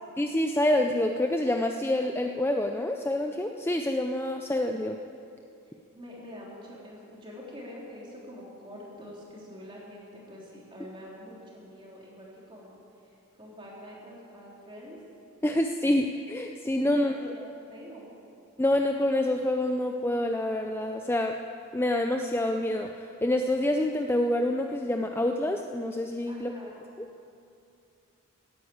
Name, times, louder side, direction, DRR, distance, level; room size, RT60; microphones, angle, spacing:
voice 1, 0.2-5.0 15.4-17.1 18.6-21.4 21.7-26.5 27.0-27.1, left 1 dB, 10° left, 4 dB, 0.4 m, -27 dB
voice 2, 5.9-13.1 13.4-15.0 16.9-18.0 26.3-26.8, equal, 25° right, -4 dB, 3.4 m, -46 dB
16.0 x 9.7 x 8.6 m, 2.6 s
head